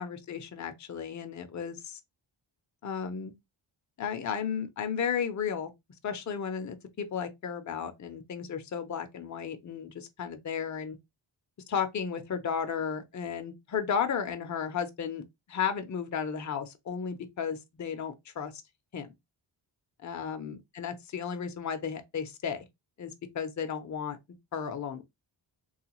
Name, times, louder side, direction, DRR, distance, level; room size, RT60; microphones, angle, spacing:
voice 1, 0.0-2.0 2.8-3.3 4.0-5.7 6.0-11.0 11.7-15.2 15.5-18.5 18.9-19.1 20.0-22.6 23.0-24.2 24.5-25.0, left 7 dB, 40° left, 0.6 m, -34 dB
3.3 x 2.4 x 2.9 m
wide cardioid pair, 105°, 47 cm